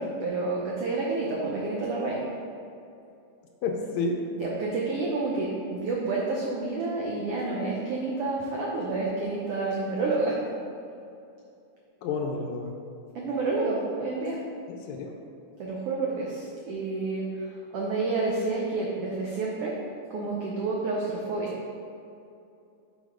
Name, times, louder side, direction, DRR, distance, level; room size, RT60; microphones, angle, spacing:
voice 1, 0.0-2.2 4.4-10.4 13.1-14.4 15.6-19.8 20.1-21.5, right 3 dB, 85° right, -3 dB, 1.3 m, -29 dB
voice 2, 3.6-4.2 12.0-12.7 14.7-15.1, left 4 dB, 75° left, 2 dB, 1.8 m, -30 dB
7.3 x 4.1 x 5.0 m, 2.6 s
omnidirectional pair, 3.6 m